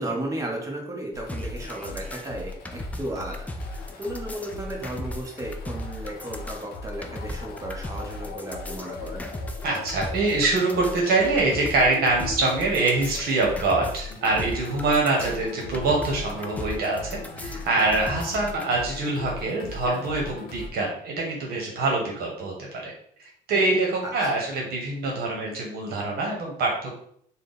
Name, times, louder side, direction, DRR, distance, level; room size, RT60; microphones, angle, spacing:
voice 1, 0.0-9.4 24.0-24.4, right 1 dB, 20° right, 0 dB, 1.0 m, -34 dB
sound 1, 1.1-20.7, left 3 dB, 70° left, 0.6 m, -39 dB
sound 2, 1.3-18.6, equal, 10° left, 0.4 m, -38 dB
voice 2, 9.6-22.9 23.2-27.0, right 2 dB, 65° right, -1 dB, 1.0 m, -25 dB
3.5 x 2.2 x 3.8 m, 0.66 s
cardioid pair, 110°, 17 cm